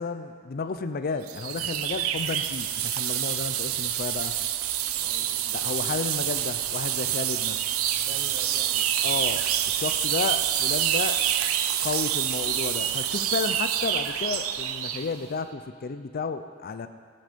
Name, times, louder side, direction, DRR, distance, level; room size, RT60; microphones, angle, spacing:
voice 1, 0.0-4.3 5.5-7.6 9.0-9.4 9.7-16.9, left 4 dB, 45° left, 10 dB, 0.5 m, -32 dB
sound 1, 1.3-15.1, right 11 dB, 85° right, 0.6 m, -27 dB
voice 2, 5.0-5.6 7.9-9.3, right 1 dB, 30° right, 2 dB, 1.3 m, -47 dB
19.5 x 7.8 x 5.2 m, 2.2 s
head